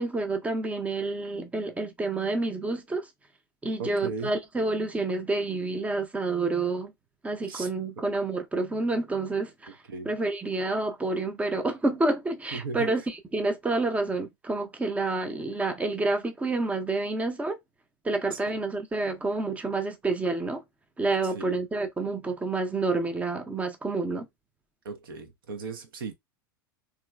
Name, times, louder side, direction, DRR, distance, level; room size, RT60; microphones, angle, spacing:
voice 1, 0.0-3.1 3.6-6.9 7.2-17.6 18.0-20.6 21.0-24.3, right 3 dB, 10° right, 0.6 m, -29 dB
voice 2, 3.8-4.3 7.5-7.7 9.9-10.1 12.5-12.9 18.3-18.5 21.3-21.6 24.8-26.1, right 4 dB, 70° right, 0.7 m, -36 dB
3.0 x 2.5 x 2.2 m
figure-of-eight pair, 80°, 12 cm